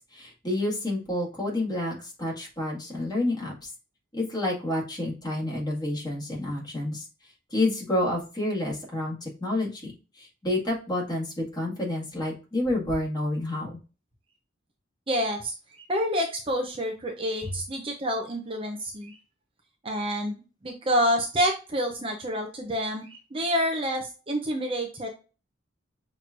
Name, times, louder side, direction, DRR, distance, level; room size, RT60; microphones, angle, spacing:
voice 1, 0.1-3.7 4.1-7.0 7.5-9.9 10.2-13.8, left 1 dB, 20° left, -3 dB, 2.0 m, -29 dB
voice 2, 15.1-15.5 15.9-19.2 19.8-25.1, equal, 30° right, 1 dB, 0.7 m, -28 dB
5.9 x 3.2 x 2.5 m, 0.33 s
head